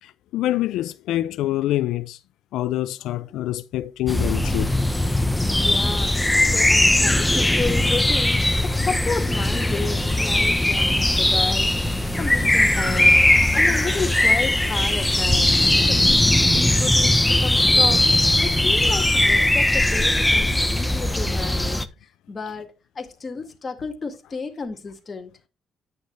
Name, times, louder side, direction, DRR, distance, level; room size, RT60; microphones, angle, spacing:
voice 1, 0.0-2.2 2.5-4.8 12.4-12.5 13.0-13.1 13.5-13.8, left 14 dB, 90° left, 0.4 m, -26 dB
sound 1, 4.1-21.9, left 1 dB, 10° left, 0.8 m, -19 dB
voice 2, 5.4-6.2 6.5-11.7 12.2-13.2 13.5-15.5 15.8-18.1 18.4-21.8 22.3-25.3, left 4 dB, 35° left, 2.0 m, -32 dB
9.7 x 6.3 x 3.2 m
cardioid pair, 90°, 0 cm